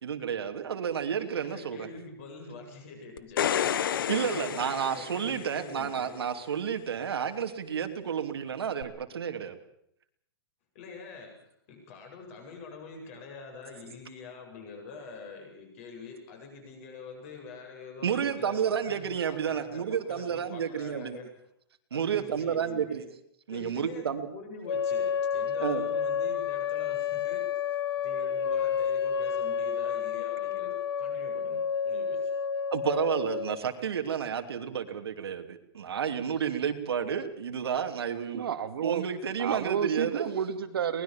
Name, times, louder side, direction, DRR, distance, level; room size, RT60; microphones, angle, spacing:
voice 1, 0.0-1.9 4.1-9.6 18.0-21.2 21.9-23.0 23.5-24.3 25.6-25.8 32.7-38.4 38.8-40.3, right 8 dB, 90° right, 6 dB, 3.0 m, -31 dB
voice 2, 1.3-6.2 10.7-11.3 11.7-21.3 21.9-23.0 23.5-27.6 28.0-32.3, left 4 dB, 35° left, 3 dB, 7.9 m, -45 dB
sound 1, 3.2-5.7 8.8-8.9, left 9 dB, 60° left, 1.2 m, -30 dB
sound 2, 24.7-33.6, left 7 dB, 90° left, 1.1 m, -30 dB
voice 3, 38.3-39.0 39.4-41.0, right 8 dB, 70° right, 8 dB, 2.5 m, -31 dB
23.0 x 20.0 x 7.4 m, 0.74 s
hypercardioid pair, 175°, 13 cm